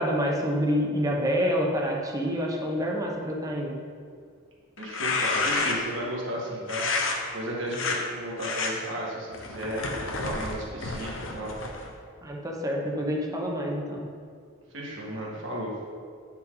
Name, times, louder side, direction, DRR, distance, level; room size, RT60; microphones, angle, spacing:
voice 1, 0.0-3.8 12.2-14.1, equal, 15° right, -1 dB, 1.0 m, -27 dB
sound 1, 4.8-6.0 6.7-7.2 7.7-8.0 8.4-8.7 9.3-11.9, left 3 dB, 70° left, 1.0 m, -29 dB
voice 2, 4.8-6.9 7.3-9.8 10.2-11.5 14.7-15.7, equal, 65° right, -4 dB, 1.9 m, -34 dB
9.1 x 5.8 x 4.0 m, 2.1 s
head